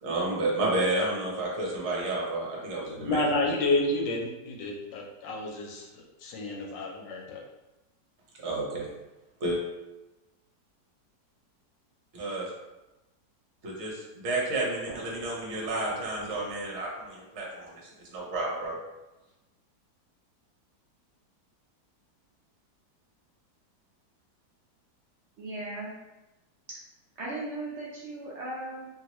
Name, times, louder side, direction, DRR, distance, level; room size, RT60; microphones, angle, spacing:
voice 1, 0.0-3.2 8.4-8.9 9.4-9.6 12.1-12.5 13.6-17.7 18.1-18.8, right 2 dB, 50° right, -3 dB, 0.9 m, -30 dB
voice 2, 3.0-7.4, left 2 dB, 85° left, 0 dB, 1.3 m, -30 dB
voice 3, 25.4-25.9 26.7-26.8 27.2-28.9, right 2 dB, 90° right, -5 dB, 0.6 m, -37 dB
2.8 x 2.8 x 2.9 m, 1.0 s
omnidirectional pair, 1.9 m